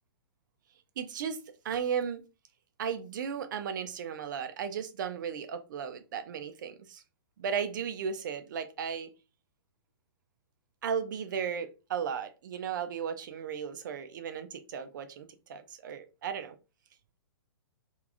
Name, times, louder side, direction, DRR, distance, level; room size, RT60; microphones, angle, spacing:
voice 1, 1.0-2.2 2.8-7.0 7.4-9.1 10.8-16.6, right 7 dB, 50° right, 0.4 m, -35 dB
3.3 x 2.4 x 2.3 m
figure-of-eight pair, 115°, 13 cm